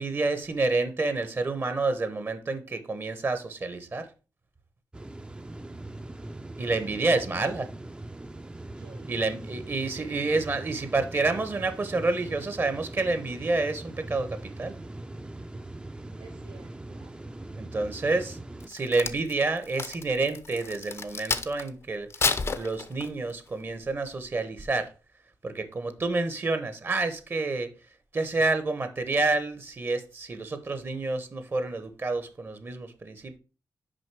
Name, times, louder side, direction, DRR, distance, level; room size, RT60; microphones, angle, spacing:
voice 1, 0.0-4.1 6.6-7.7 9.1-14.7 17.6-18.4 18.7-22.1 22.5-24.9 25.4-27.7 28.1-33.4, right 3 dB, 35° right, 0.9 m, -29 dB
sound 1, 4.9-18.7, right 2 dB, 15° right, 0.5 m, -41 dB
voice 2, 6.7-7.6 8.7-9.2 9.6-9.7 16.2-17.1, right 5 dB, 85° right, 1.1 m, -51 dB
Crack, 18.6-21.7 22.1-23.3 23.8-24.1, left 4 dB, 40° left, 0.6 m, -30 dB
6.3 x 5.1 x 4.6 m
wide cardioid pair, 120°, 7 cm